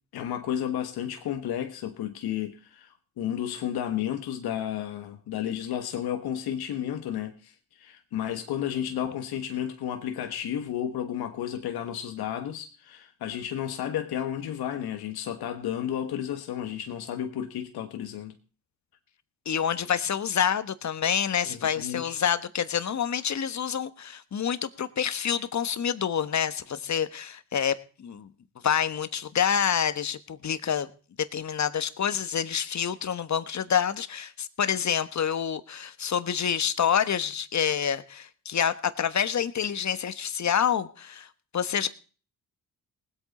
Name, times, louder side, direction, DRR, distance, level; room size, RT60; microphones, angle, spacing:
voice 1, 0.1-18.3 21.5-22.2, left 10 dB, 70° left, 1.4 m, -32 dB
voice 2, 19.4-28.3 28.6-30.9 31.3-41.3 41.5-41.9, left 8 dB, 45° left, 1.2 m, -27 dB
19.0 x 8.4 x 4.3 m
supercardioid pair, 60°, 39 cm